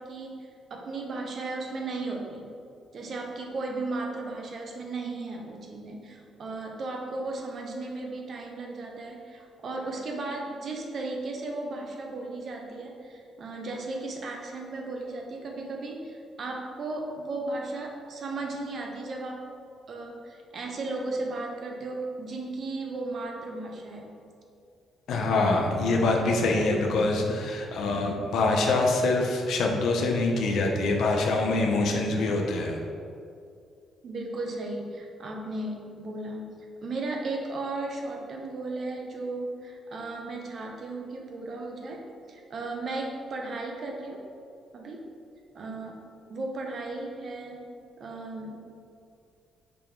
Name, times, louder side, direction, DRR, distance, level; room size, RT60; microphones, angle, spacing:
voice 1, 0.0-2.4 2.9-19.4 19.9-24.1 34.0-44.3 44.7-45.0 45.5-46.0 46.3-47.6 48.0-48.7, right 2 dB, 55° right, 1 dB, 0.7 m, -35 dB
voice 2, 25.1-32.8, left 2 dB, 75° left, 1 dB, 0.6 m, -25 dB
5.0 x 2.9 x 3.6 m, 2.4 s
cardioid pair, 90°, 0 cm